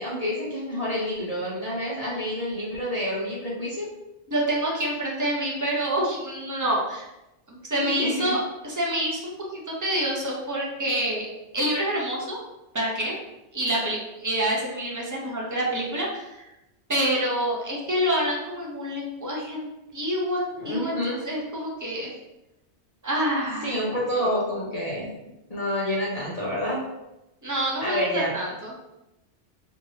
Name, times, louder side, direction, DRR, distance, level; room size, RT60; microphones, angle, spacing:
voice 1, 0.0-3.9 7.8-8.3 20.6-21.2 23.6-25.1 25.5-26.8 27.8-28.3, equal, 40° left, -7 dB, 0.6 m, -28 dB
voice 2, 4.3-7.0 7.5-11.3 11.5-12.4 12.7-13.1 13.5-16.5 16.9-22.1 23.0-23.8 24.2-24.3 27.4-28.7, right 1 dB, 25° right, -3 dB, 0.5 m, -27 dB
3.0 x 2.6 x 2.7 m, 0.94 s
omnidirectional pair, 1.1 m